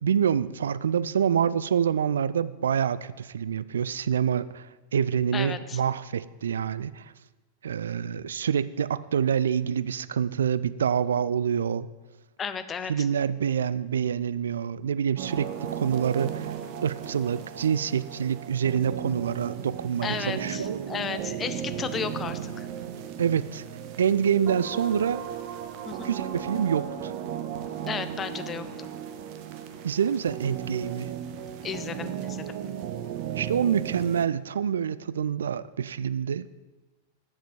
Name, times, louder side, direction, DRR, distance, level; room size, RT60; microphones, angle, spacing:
voice 1, 0.0-7.1 7.6-11.9 12.9-16.5 16.8-20.8 23.2-23.6 24.0-25.3 26.0-27.1 29.8-31.1 33.3-36.5, right 8 dB, 65° right, 17 dB, 0.3 m, -26 dB
voice 2, 5.3-5.8 12.4-13.1 20.0-22.7 25.9-26.1 27.8-28.9 31.6-32.6, left 7 dB, 20° left, 11 dB, 0.6 m, -34 dB
sound 1, 15.2-34.3, right 9 dB, 45° right, 0.8 m, -36 dB
7.5 x 7.2 x 6.7 m, 1.2 s
figure-of-eight pair, 90°, 0 cm